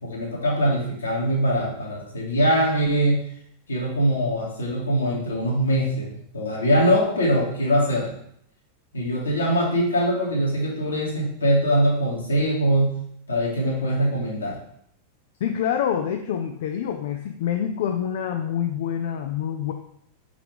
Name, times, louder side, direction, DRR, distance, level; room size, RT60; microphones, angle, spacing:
voice 1, 0.0-3.2 3.7-8.1 8.9-13.0 13.3-14.6, equal, 75° left, -4 dB, 2.0 m, -22 dB
voice 2, 15.4-19.7, left 9 dB, 55° left, 5 dB, 0.5 m, -26 dB
5.8 x 4.8 x 3.5 m, 0.69 s
figure-of-eight pair, 90°, 0 cm